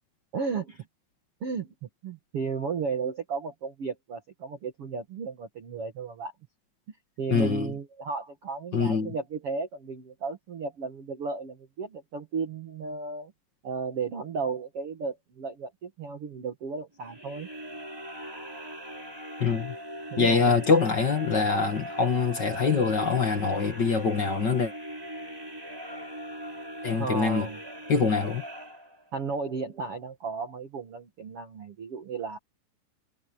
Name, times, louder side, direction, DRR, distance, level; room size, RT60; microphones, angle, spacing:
voice 1, 0.3-0.8 1.4-6.3 7.2-13.3 13.6-17.5 20.1-20.5 27.0-27.6 29.1-32.4, right 5 dB, 60° right, 1.5 m, -34 dB
voice 2, 7.3-7.7 8.7-9.1 19.4-19.7 20.2-24.7 26.8-27.5 27.9-28.4, left 5 dB, 50° left, 1.3 m, -24 dB
sound 1, 17.0-29.3, equal, 5° right, 5.6 m, -40 dB
omnidirectional pair, 5.1 m